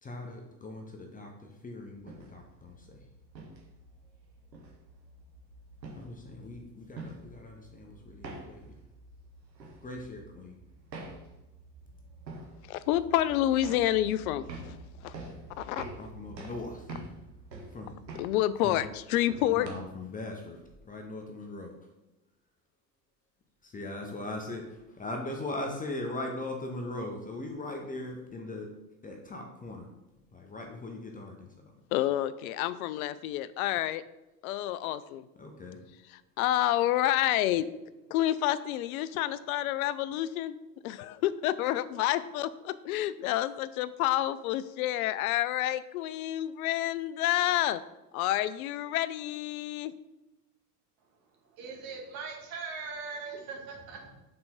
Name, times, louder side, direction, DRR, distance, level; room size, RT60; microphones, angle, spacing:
voice 1, 0.0-3.0 6.0-8.8 9.8-10.6 16.0-17.2 17.7-18.2 18.6-18.8 19.5-21.8 23.6-28.7 29.0-29.9 30.3-31.8 35.4-35.8, left 2 dB, 15° left, 2 dB, 0.8 m, -40 dB
sound 1, 1.9-19.7, right 2 dB, 90° right, 1.1 m, -47 dB
voice 2, 12.7-15.1 15.6-15.8 18.2-19.7 31.9-34.0 34.4-35.3 36.4-37.7 38.1-40.6 40.8-47.8 48.1-49.9, left 13 dB, 60° left, 15 dB, 0.5 m, -29 dB
voice 3, 51.5-54.1, right 4 dB, 45° right, 1 dB, 1.6 m, -40 dB
5.8 x 4.3 x 3.7 m, 0.98 s
hypercardioid pair, 80°, 49 cm